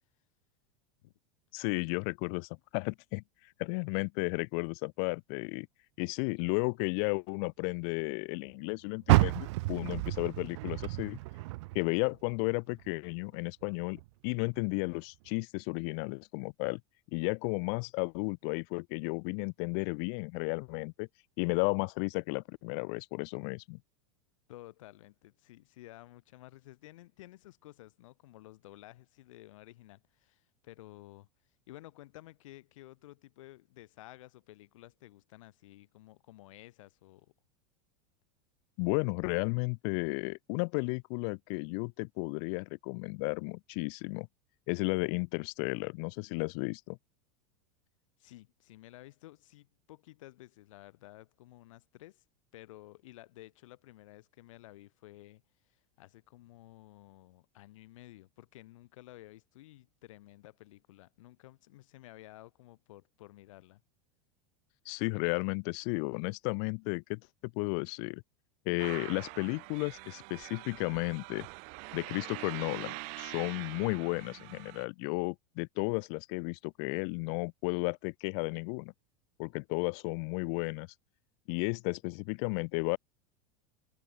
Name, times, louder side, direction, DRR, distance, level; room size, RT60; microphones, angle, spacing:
voice 1, 1.5-3.2 3.6-5.7 6.0-11.2 11.7-16.8 17.1-21.1 21.4-23.8 38.8-44.3 44.7-47.0 64.8-67.2 67.5-68.2 68.6-71.5 71.9-78.9 79.4-80.9 81.5-83.0, left 40 dB or more, 50° left, 1.5 m, -33 dB
Car, 9.0-12.3 12.7-14.1 14.5-14.6 15.2-15.3, right 21 dB, 60° right, 0.4 m, -30 dB
voice 2, 24.5-31.3 31.7-37.3 48.2-52.2 52.5-55.4 56.0-63.8, left 17 dB, 75° left, 6.8 m, -53 dB
sound 1, 68.8-74.9, right 35 dB, 45° right, 1.2 m, -44 dB
supercardioid pair, 165°, 17 cm